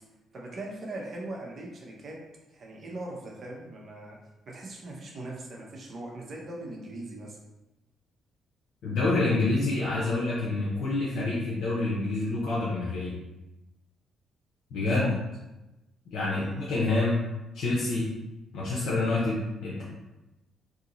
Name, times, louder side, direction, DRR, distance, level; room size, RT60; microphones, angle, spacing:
voice 1, 0.3-2.2 2.5-4.2 4.5-7.4 14.9-15.1 16.3-16.7, right 2 dB, 50° right, -2 dB, 0.9 m, -40 dB
voice 2, 8.8-13.1 14.7-15.1 16.1-17.2 17.5-18.1 18.5-19.8, left 2 dB, 80° left, -7 dB, 0.8 m, -27 dB
2.9 x 2.7 x 3.9 m, 1.0 s
cardioid pair, 90°, 0 cm